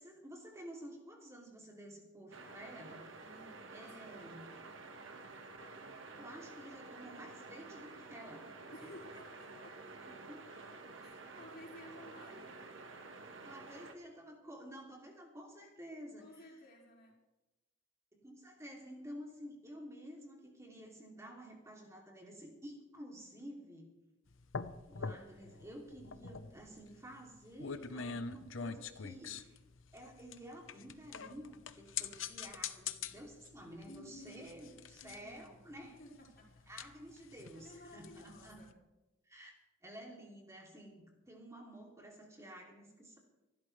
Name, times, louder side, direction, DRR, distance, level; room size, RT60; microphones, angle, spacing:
voice 1, 0.0-3.1 3.7-4.5 6.2-8.5 10.1-10.4 13.4-16.6 18.1-23.9 24.9-29.6 29.9-35.9 36.7-38.6 39.2-43.2, equal, 15° right, -1 dB, 2.8 m, -51 dB
sound 1, 2.3-13.9, right 3 dB, 75° right, 1.7 m, -51 dB
voice 2, 3.2-4.4 8.7-9.9 11.0-12.5 16.2-17.2 26.4-26.7 33.8-34.5 35.0-35.6 36.0-36.7 37.5-38.7, equal, 55° left, -3 dB, 5.1 m, -55 dB
sound 2, 24.3-38.7, left 6 dB, 80° left, 0.9 m, -45 dB
26.0 x 12.5 x 3.3 m, 1.0 s
head